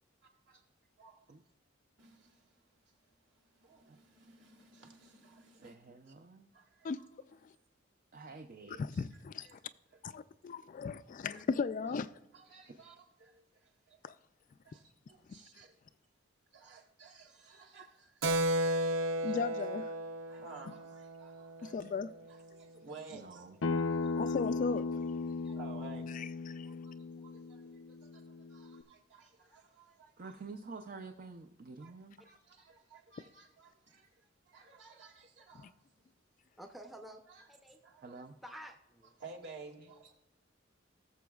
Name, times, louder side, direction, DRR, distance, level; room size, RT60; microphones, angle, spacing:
voice 1, 0.2-0.6 1.0-1.3 2.0-6.1 6.5-7.1 9.4-10.0 11.3-11.4 11.9-12.0 12.3-14.1 14.6-15.8 16.5-19.4 20.3-21.9 22.3-24.4 25.3-26.1 26.5-30.4 31.8-31.9 32.2-35.7 37.3-37.5 37.8-38.3 39.2-40.1, right 4 dB, 60° right, 2.1 m, -55 dB
voice 2, 5.6-6.5 8.1-9.0 23.1-23.5 30.2-32.2 38.0-38.3, right 4 dB, 45° right, 0.5 m, -49 dB
voice 3, 8.7-9.6 10.0-12.1 14.0-14.2 19.2-20.0 21.6-22.1 24.2-24.9 26.1-26.7, left 5 dB, 40° left, 0.3 m, -36 dB
Keyboard (musical), 18.2-22.3, right 1 dB, 90° right, 0.6 m, -34 dB
Acoustic guitar, 23.6-28.8, left 4 dB, 85° left, 0.6 m, -36 dB
voice 4, 36.6-37.2 37.5-37.8 38.4-39.1, equal, ahead, 0.6 m, -50 dB
19.5 x 7.0 x 2.3 m
head